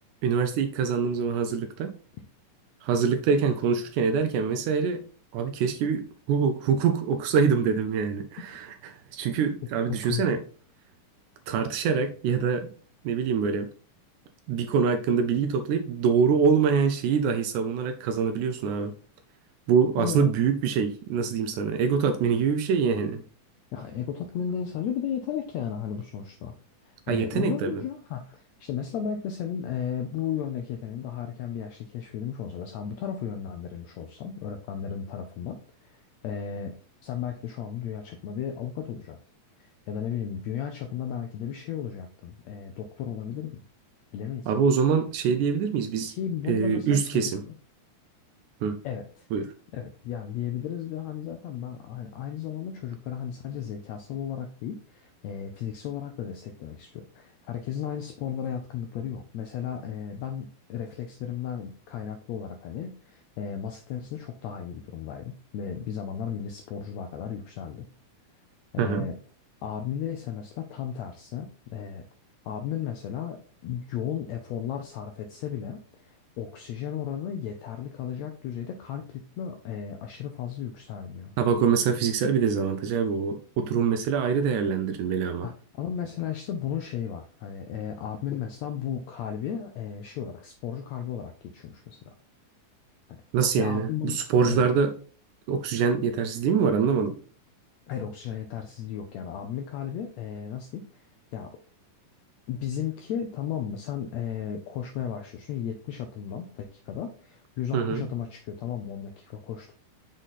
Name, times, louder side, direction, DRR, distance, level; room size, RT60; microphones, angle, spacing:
voice 1, 0.2-1.9 2.8-5.0 5.3-10.4 11.5-12.7 13.0-13.7 14.5-18.9 19.7-23.2 27.1-27.7 44.5-46.1 46.5-47.4 48.6-48.8 49.3-49.5 68.8-69.1 81.4-85.5 93.3-94.9 95.5-97.2 107.7-108.0, right 6 dB, 80° right, 1.9 m, -25 dB
voice 2, 10.0-10.4 20.0-20.3 23.7-26.6 26.8-36.0 36.2-36.8 37.0-39.2 39.6-43.6 44.1-44.5 46.1-47.5 48.8-49.3 49.7-67.9 68.7-69.2 69.6-72.0 72.4-81.3 85.4-92.1 93.1-93.2 93.6-94.2 94.4-94.7 97.9-101.0 101.3-101.5 102.5-109.7, left 8 dB, 80° left, 1.5 m, -34 dB
6.4 x 3.9 x 3.9 m
omnidirectional pair, 3.8 m